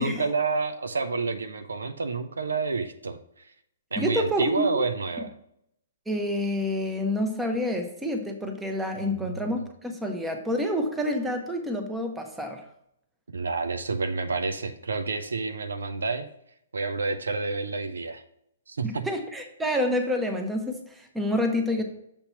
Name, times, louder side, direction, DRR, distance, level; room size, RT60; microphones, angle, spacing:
voice 1, 0.0-3.2 3.9-5.3 9.0-9.3 13.3-16.3 16.7-18.2 18.7-19.1, right 4 dB, 90° right, 9 dB, 0.6 m, -29 dB
voice 2, 4.0-4.8 6.1-12.6 18.8-21.8, left 1 dB, 5° right, 4 dB, 0.8 m, -28 dB
6.9 x 2.9 x 5.6 m, 0.74 s
hypercardioid pair, 135°, 0 cm